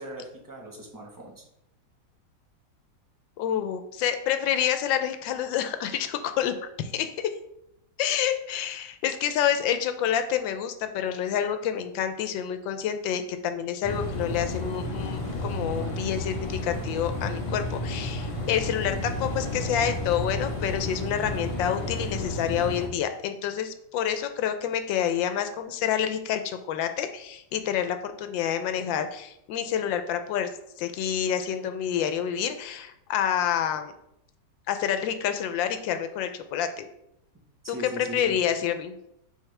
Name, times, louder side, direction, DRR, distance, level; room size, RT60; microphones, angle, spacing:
voice 1, 0.0-1.4 37.6-38.4, right 2 dB, 15° right, -1 dB, 0.6 m, -39 dB
voice 2, 3.4-7.3 8.0-30.5 30.8-33.9 34.7-36.9 37.7-38.9, left 9 dB, 90° left, 8 dB, 1.3 m, -28 dB
sound 1, 13.8-22.9, left 1 dB, 50° left, 0.3 m, -32 dB
8.3 x 3.5 x 3.3 m, 0.79 s
omnidirectional pair, 2.0 m